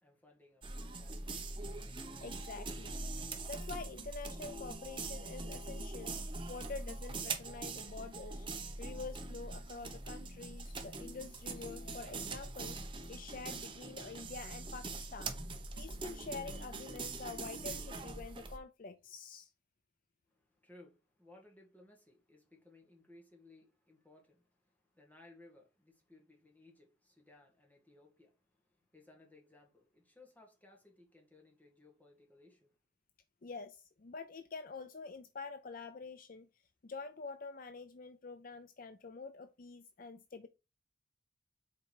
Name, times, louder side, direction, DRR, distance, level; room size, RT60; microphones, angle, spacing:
voice 1, 0.0-1.8 20.3-32.8, left 2 dB, 10° left, 2.0 m, -62 dB
sound 1, 0.6-18.6, right 3 dB, 25° right, 1.0 m, -43 dB
voice 2, 2.2-3.0 3.5-6.2 6.5-15.4 15.8-19.5 33.4-40.5, left 4 dB, 45° left, 0.5 m, -47 dB
7.1 x 4.6 x 4.8 m
head